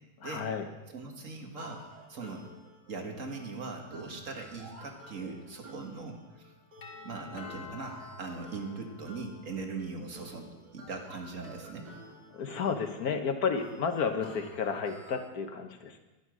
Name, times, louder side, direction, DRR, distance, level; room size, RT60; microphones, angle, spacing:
voice 1, 0.2-0.6 12.3-16.0, left 6 dB, 55° left, 6 dB, 1.5 m, -32 dB
voice 2, 0.9-1.8 2.1-2.5 2.9-6.5 7.0-11.9, right 3 dB, 45° right, 3 dB, 1.9 m, -40 dB
sound 1, 1.6-15.3, right 1 dB, 65° right, 2.9 m, -51 dB
Doorbell, 6.8-9.6, left 5 dB, 80° left, 2.4 m, -49 dB
12.0 x 11.5 x 6.3 m, 1.1 s
omnidirectional pair, 2.0 m